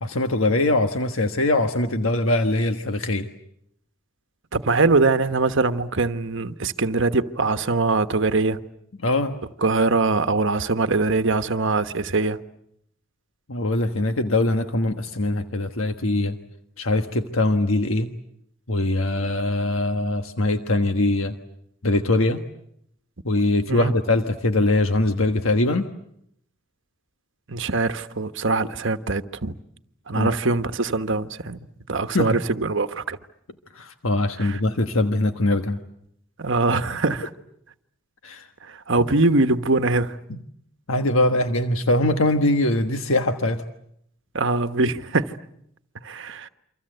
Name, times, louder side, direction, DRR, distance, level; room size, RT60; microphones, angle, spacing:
voice 1, 0.0-3.3 9.0-9.3 13.5-16.4 16.8-18.1 18.7-21.3 21.8-22.4 23.2-25.9 30.1-30.3 32.1-32.4 33.7-35.8 38.2-38.5 40.3-40.4 40.9-43.6, left 2 dB, 75° left, 1.4 m, -22 dB
voice 2, 4.5-8.6 9.6-12.4 23.7-23.9 27.5-29.5 30.1-33.2 34.4-34.6 36.4-37.3 38.6-40.2 44.3-45.4 46.0-46.5, right 3 dB, 65° right, 1.3 m, -22 dB
29.0 x 25.5 x 7.9 m
head